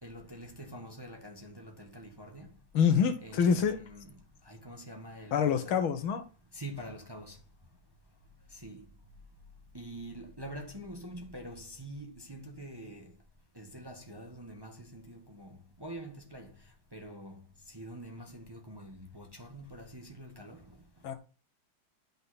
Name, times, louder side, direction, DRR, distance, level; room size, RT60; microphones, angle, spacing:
voice 1, 0.0-2.5 3.2-4.1 4.4-5.8 6.5-7.4 8.5-8.9 9.7-13.1 13.5-21.1, right 1 dB, 15° right, 1.2 m, -46 dB
voice 2, 2.7-3.8 5.3-6.2 21.0-21.1, left 7 dB, 85° left, 2.1 m, -26 dB
11.5 x 5.5 x 4.2 m
omnidirectional pair, 2.2 m